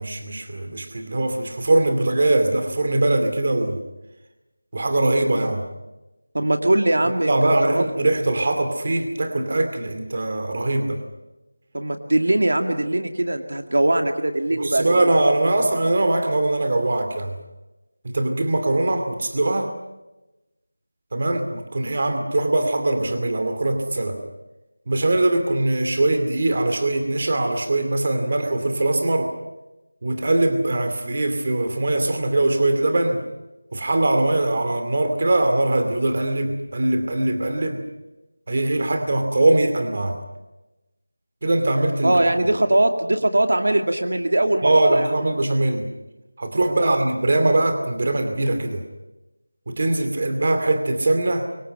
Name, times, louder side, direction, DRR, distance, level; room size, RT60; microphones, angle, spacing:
voice 1, 0.0-3.8 4.7-5.7 7.3-11.0 14.6-17.4 18.0-19.7 21.1-24.2 24.9-29.3 30.0-33.3 33.7-37.8 38.5-40.2 41.4-42.2 44.6-45.9 46.4-48.8 49.7-51.4, right 2 dB, 30° right, 6 dB, 2.6 m, -21 dB
voice 2, 6.3-7.9 11.7-14.9 42.0-45.1 46.7-47.0, right 1 dB, 55° right, 5 dB, 2.2 m, -21 dB
28.0 x 24.5 x 5.5 m, 1.0 s
figure-of-eight pair, 180°, 0 cm